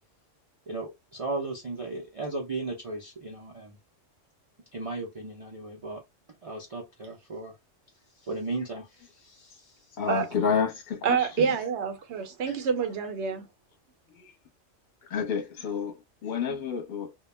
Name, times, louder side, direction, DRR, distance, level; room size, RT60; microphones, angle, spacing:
voice 1, 0.7-3.8 4.7-6.0 6.4-7.5 8.2-9.7 12.4-12.6, right 2 dB, 50° right, 0.4 m, -36 dB
voice 2, 9.9-11.6 14.1-14.3 15.0-17.1, left 6 dB, 45° left, 0.8 m, -30 dB
voice 3, 11.0-13.4, right 6 dB, 65° right, 0.8 m, -27 dB
2.2 x 2.1 x 3.1 m
omnidirectional pair, 1.3 m